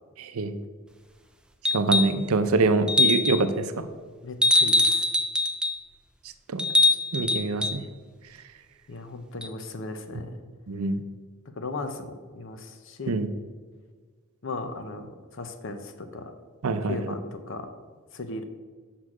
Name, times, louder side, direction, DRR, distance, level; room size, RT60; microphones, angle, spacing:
voice 1, 0.2-0.5 1.7-3.9 6.5-6.6 7.1-7.8 10.7-11.0 13.1-13.3 16.6-17.1, right 3 dB, 75° right, 10 dB, 0.6 m, -25 dB
sound 1, 1.7-2.2 2.9-3.5 4.4-5.8 6.6-7.8 9.4-9.5, left 2 dB, 5° right, 0.3 m, -22 dB
voice 2, 4.2-5.1 8.9-10.3 11.5-13.2 14.4-16.3 16.9-17.7 18.1-18.4, left 2 dB, 60° left, 8 dB, 0.7 m, -36 dB
6.5 x 5.9 x 4.8 m, 1.5 s
head